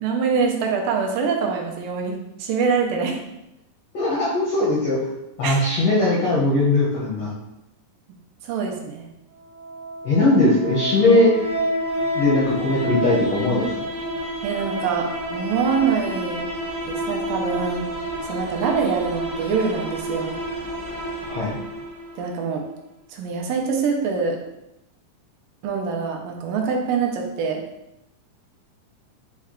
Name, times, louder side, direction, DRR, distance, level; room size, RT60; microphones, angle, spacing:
voice 1, 0.0-3.2 4.6-4.7 5.4-5.6 8.4-9.1 14.4-16.5 16.9-17.9 18.2-20.4 22.2-22.7 23.1-24.4 25.6-27.6, right 5 dB, 80° right, 2 dB, 2.2 m, -24 dB
voice 2, 3.9-5.0 5.4-7.3 10.0-11.3 12.1-13.9 21.3-21.6, left 2 dB, 75° left, -6 dB, 1.5 m, -19 dB
sound 1, 9.4-22.3, equal, 55° right, 1.1 m, -29 dB
6.3 x 2.3 x 3.6 m, 0.88 s
omnidirectional pair, 3.9 m